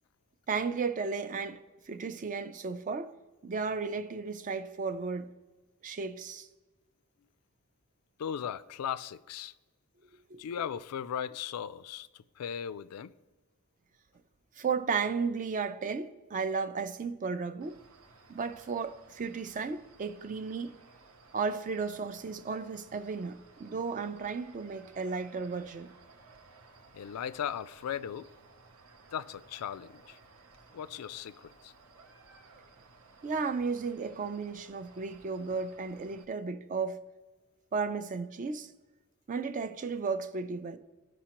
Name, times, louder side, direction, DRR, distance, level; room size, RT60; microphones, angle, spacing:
voice 1, 0.5-3.1 3.4-5.3 5.8-6.5 10.3-10.4 14.6-17.8 18.3-20.7 21.3-25.9 33.2-37.0 37.7-38.7 39.3-40.8, right 5 dB, 35° right, 0.4 m, -34 dB
voice 2, 8.2-9.5 10.4-13.1 26.9-28.3 29.1-30.2 30.7-31.7, left 8 dB, 90° left, 0.3 m, -37 dB
sound 1, 17.6-36.2, right 3 dB, 75° right, 0.8 m, -58 dB
14.0 x 5.0 x 2.9 m
head